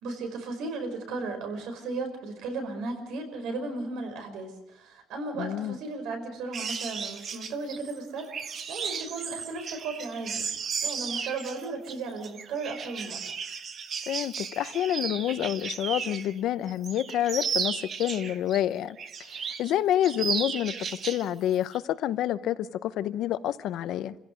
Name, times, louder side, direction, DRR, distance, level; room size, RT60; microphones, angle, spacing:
voice 1, 0.0-10.5 10.8-13.3, right 3 dB, 85° right, 5.2 m, -35 dB
voice 2, 5.4-5.7 14.1-19.0 19.3-20.7 21.0-22.6 22.8-24.1, left 11 dB, 65° left, 0.8 m, -28 dB
sound 1, 6.5-16.3 16.7-18.6 19.0-19.7 20.0-21.3 21.5-21.8, right 6 dB, 40° right, 1.3 m, -34 dB
28.5 x 16.0 x 6.6 m
cardioid pair, 175°, 0 cm